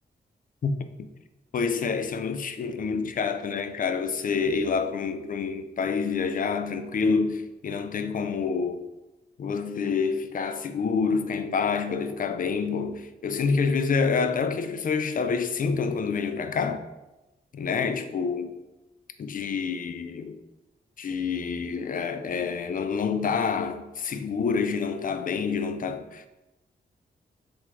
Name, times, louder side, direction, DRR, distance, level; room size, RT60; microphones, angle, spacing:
voice 1, 1.5-8.8 9.4-16.8 17.5-18.5 19.2-20.4 21.0-26.3, left 5 dB, 50° left, 0.4 m, -27 dB
3.5 x 3.3 x 3.1 m
cardioid pair, 70°, 19 cm